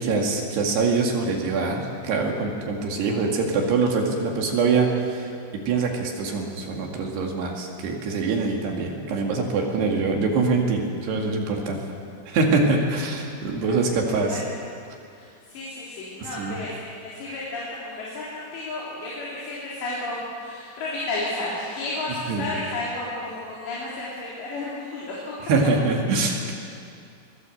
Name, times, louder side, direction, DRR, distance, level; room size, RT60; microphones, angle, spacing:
voice 1, 0.0-5.3 5.7-11.8 12.3-14.4 16.4-16.6 22.3-22.5 25.5-26.5, right 4 dB, 70° right, 1 dB, 4.2 m, -24 dB
voice 2, 13.4-13.8 14.1-14.5 15.1-16.7 17.0-25.3, left 2 dB, 75° left, -6 dB, 5.7 m, -32 dB
24.0 x 19.0 x 7.9 m, 2.4 s
omnidirectional pair, 5.1 m